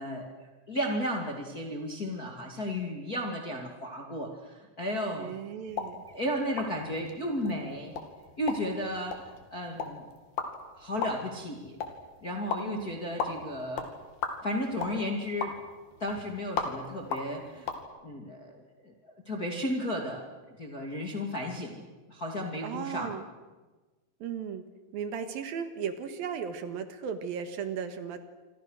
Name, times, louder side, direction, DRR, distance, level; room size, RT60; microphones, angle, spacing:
voice 1, 0.0-5.3 6.1-7.9 8.4-10.0 10.8-11.8 12.2-13.9 14.4-15.5 16.0-17.7 18.0-18.9 19.3-20.3 20.6-23.1, left 1 dB, 25° left, 1 dB, 2.2 m, -34 dB
voice 2, 5.2-6.0 12.6-13.0 22.6-23.2 24.2-24.6 24.9-28.2, right 7 dB, 65° right, 8 dB, 3.2 m, -36 dB
sound 1, 5.7-17.8, left 5 dB, 65° left, 4.2 m, -38 dB
27.0 x 26.5 x 6.5 m, 1.3 s
omnidirectional pair, 4.8 m